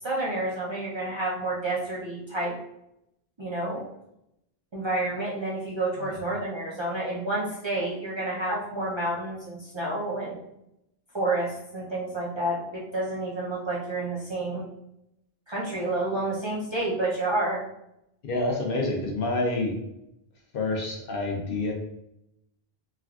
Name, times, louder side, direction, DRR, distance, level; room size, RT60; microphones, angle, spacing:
voice 1, 0.0-2.6 3.4-3.9 4.7-10.4 11.1-14.7 15.5-17.6, right 2 dB, 35° right, -7 dB, 0.5 m, -29 dB
voice 2, 18.2-19.7 20.5-21.7, left 2 dB, 65° left, 0 dB, 0.8 m, -28 dB
3.3 x 2.3 x 2.3 m, 0.82 s
omnidirectional pair, 1.0 m